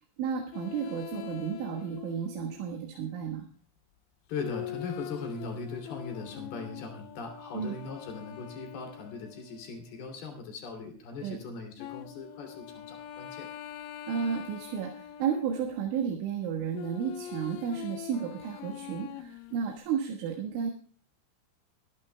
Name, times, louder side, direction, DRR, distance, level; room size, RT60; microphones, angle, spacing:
voice 1, 0.2-3.5 7.5-7.8 11.2-11.4 14.1-20.7, right 7 dB, 70° right, 2 dB, 3.9 m, -32 dB
sound 1, 0.5-2.8 4.4-10.4 11.8-15.8 16.7-19.8, left 12 dB, 90° left, 3.6 m, -43 dB
voice 2, 4.3-13.5, left 4 dB, 55° left, 4 dB, 4.5 m, -39 dB
22.5 x 12.5 x 2.3 m, 0.42 s
omnidirectional pair, 5.9 m